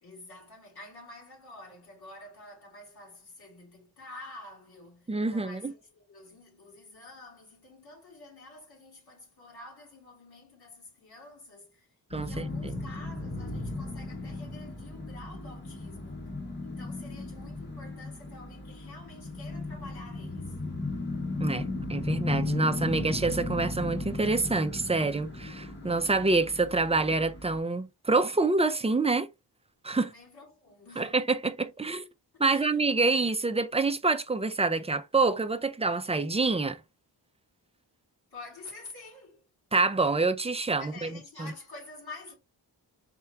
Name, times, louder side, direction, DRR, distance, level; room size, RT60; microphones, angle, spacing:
voice 1, 0.0-11.9 12.2-16.3 16.6-20.6 30.0-31.1 32.3-32.9 38.3-39.5 40.8-42.3, left 2 dB, 65° left, 2.9 m, -49 dB
voice 2, 5.1-5.7 12.1-12.7 21.4-29.3 29.8-30.1 31.0-32.1 32.4-36.8 39.7-41.1 41.4-41.5, right 3 dB, 15° right, 0.5 m, -27 dB
sound 1, 12.1-27.6, left 2 dB, 25° left, 1.3 m, -36 dB
4.4 x 3.5 x 2.7 m
wide cardioid pair, 95°, 41 cm